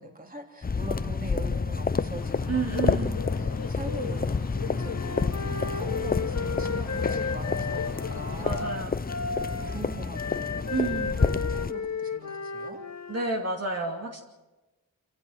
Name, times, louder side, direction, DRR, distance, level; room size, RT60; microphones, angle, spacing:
voice 1, 0.0-8.8 9.6-12.8, right 2 dB, 25° right, 3 dB, 3.3 m, -42 dB
sound 1, 0.6-11.7, left 4 dB, 25° left, 0.7 m, -29 dB
Bird, 2.2-8.7, left 6 dB, 85° left, 1.4 m, -40 dB
voice 2, 2.5-3.2 8.4-9.1 10.7-11.3 13.1-14.2, right 3 dB, 45° right, 0 dB, 2.8 m, -30 dB
Wind instrument woodwind instrument, 4.8-13.3, left 4 dB, 50° left, 2.6 m, -34 dB
27.5 x 15.5 x 6.5 m, 1.1 s
cardioid pair, 65°, 35 cm